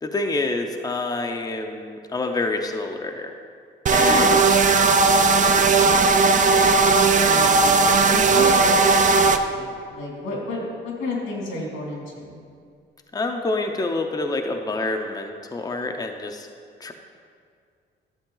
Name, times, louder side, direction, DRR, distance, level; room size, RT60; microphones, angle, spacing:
voice 1, 0.0-3.3 3.9-4.4 13.1-16.5 16.8-16.9, left 2 dB, 20° left, 4 dB, 0.7 m, -27 dB
sound 1, 3.9-9.4, right 4 dB, 40° right, 0.6 m, -17 dB
voice 2, 4.0-4.4 4.7-6.4 7.2-12.4, left 2 dB, 85° left, -2 dB, 2.6 m, -32 dB
11.5 x 6.9 x 3.9 m, 2.2 s
cardioid pair, 90°, 20 cm